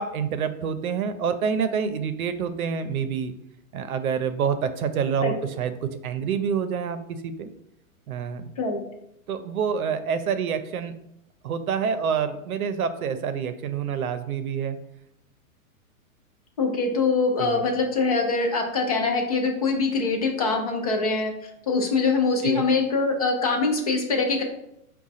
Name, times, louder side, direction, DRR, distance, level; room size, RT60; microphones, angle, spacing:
voice 1, 0.0-3.3 3.7-5.7 6.0-7.5 8.1-8.5 9.3-10.9 11.4-14.8 17.4-17.6 22.4-22.6, right 7 dB, 85° right, 10 dB, 0.7 m, -27 dB
voice 2, 16.6-24.4, left 4 dB, 30° left, 3 dB, 0.4 m, -23 dB
4.8 x 2.3 x 4.1 m, 0.81 s
hypercardioid pair, 165°, 42 cm